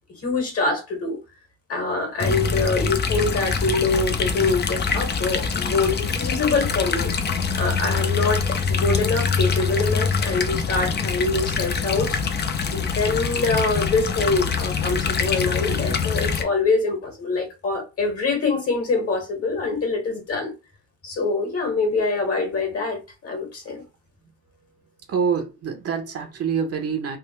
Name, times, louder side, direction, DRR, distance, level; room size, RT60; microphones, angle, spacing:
voice 1, 0.2-1.2 1.7-7.1 7.6-12.2 12.7-20.5 21.0-23.8, left 3 dB, 50° left, 1.7 m, -24 dB
sound 1, 2.2-16.4, left 5 dB, 35° left, 0.5 m, -24 dB
voice 2, 25.1-27.2, right 6 dB, 50° right, 0.9 m, -26 dB
3.5 x 2.1 x 3.1 m
cardioid pair, 90°, 30 cm